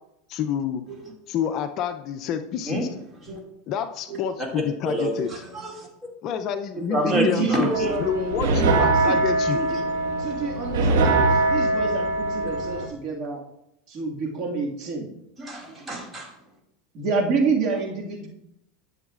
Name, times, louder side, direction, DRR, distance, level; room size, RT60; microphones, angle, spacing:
voice 1, 0.3-0.8 1.3-2.9 3.7-5.3 6.2-9.6, left 8 dB, 45° left, 8 dB, 0.5 m, -28 dB
voice 2, 4.8-5.9 6.7-7.9 15.4-16.3, equal, 20° right, -1 dB, 2.3 m, -28 dB
voice 3, 7.1-9.2 9.5-9.9 10.2-13.4 13.9-15.1 16.9-18.3, right 4 dB, 45° right, -1 dB, 1.9 m, -28 dB
sound 1, 7.7-12.9, right 2 dB, 85° right, 1.4 m, -22 dB
11.5 x 7.1 x 2.5 m, 0.81 s
supercardioid pair, 135°, 0 cm